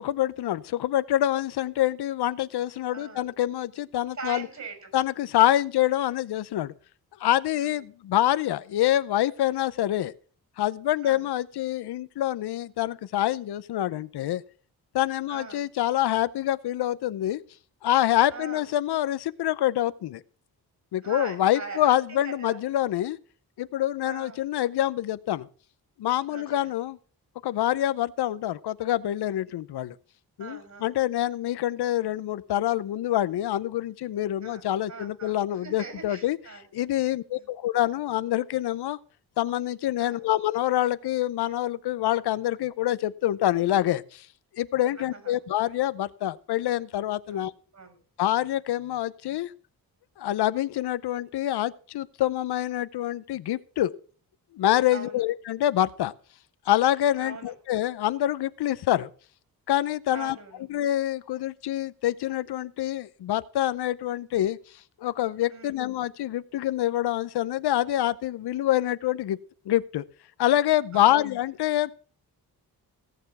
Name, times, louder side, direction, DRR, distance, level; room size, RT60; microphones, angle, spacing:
voice 1, 0.0-4.5 4.9-6.7 7.2-10.1 10.6-14.4 14.9-17.4 17.8-20.2 20.9-23.2 23.6-25.5 26.0-27.0 27.4-30.0 30.4-36.4 36.7-39.0 39.4-44.3 44.6-47.5 48.2-49.5 50.2-53.9 54.5-56.1 56.7-59.1 59.7-60.4 60.7-64.6 65.0-69.4 69.7-70.0 70.4-71.9, left 13 dB, 90° left, 17 dB, 0.7 m, -26 dB
voice 2, 2.9-3.3 4.2-4.9 5.3-5.5 7.5-7.8 11.0-11.3 15.3-15.7 18.3-18.7 21.0-22.6 24.0-24.4 26.3-26.6 30.4-31.0 34.4-37.5 40.0-40.2 45.0-45.4 47.3-48.0 54.9-55.2 57.2-57.5 60.1-60.6 65.5-65.8 70.9-71.2, right 4 dB, 45° right, 7 dB, 5.7 m, -42 dB
17.5 x 6.9 x 6.0 m, 0.41 s
cardioid pair, 100°, 38 cm